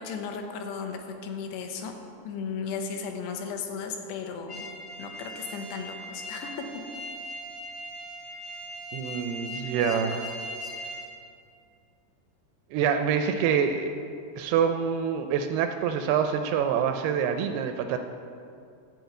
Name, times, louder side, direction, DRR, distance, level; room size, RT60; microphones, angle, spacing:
voice 1, 0.0-1.9 2.2-4.7 5.0-6.6, left 5 dB, 80° left, 4 dB, 2.9 m, -35 dB
sound 1, 4.5-11.1, equal, 50° left, 1.4 m, -39 dB
voice 2, 8.9-10.3 12.7-13.9 14.4-18.0, right 7 dB, 85° right, 7 dB, 2.3 m, -26 dB
12.5 x 4.5 x 8.0 m, 2.4 s
omnidirectional pair, 4.9 m